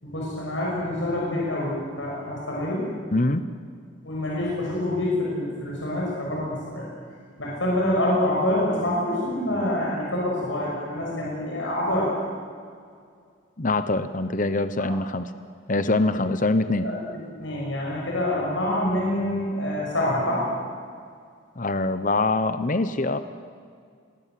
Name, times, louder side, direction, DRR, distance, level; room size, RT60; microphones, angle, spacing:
voice 1, 0.0-2.9 4.0-6.8 7.4-12.1 14.8-14.9 16.8-20.4, left 1 dB, 75° left, -4 dB, 6.3 m, -26 dB
voice 2, 3.1-3.5 13.6-15.3 15.7-16.9 21.6-23.2, left 2 dB, 40° left, 11 dB, 1.0 m, -24 dB
28.0 x 21.0 x 7.8 m, 2.2 s
head